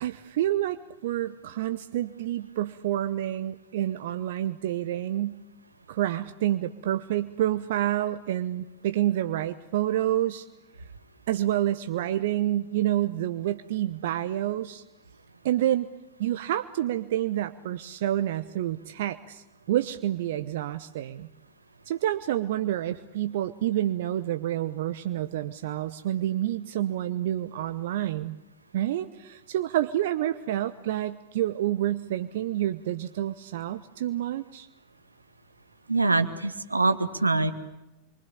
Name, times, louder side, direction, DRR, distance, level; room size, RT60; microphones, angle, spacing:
voice 1, 0.0-5.4 5.9-10.4 11.3-14.8 15.4-15.9 16.2-21.3 21.9-28.4 28.7-34.7, right 13 dB, 55° right, 10 dB, 1.0 m, -28 dB
voice 2, 35.9-37.5, right 3 dB, 80° right, 9 dB, 1.6 m, -24 dB
27.5 x 24.0 x 8.6 m, 0.92 s
figure-of-eight pair, 90°, 0 cm